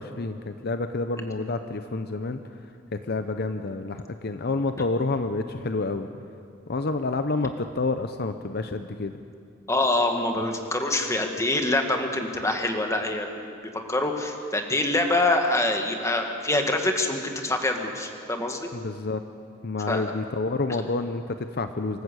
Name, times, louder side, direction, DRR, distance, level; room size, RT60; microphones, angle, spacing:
voice 1, 0.0-2.4 2.9-6.1 6.7-9.2 18.7-19.2 19.6-22.0, left 3 dB, 50° left, 8 dB, 0.7 m, -29 dB
voice 2, 9.7-13.5 13.9-18.7 19.9-20.1, left 2 dB, 15° left, 4 dB, 1.7 m, -25 dB
25.5 x 13.5 x 8.3 m, 2.4 s
head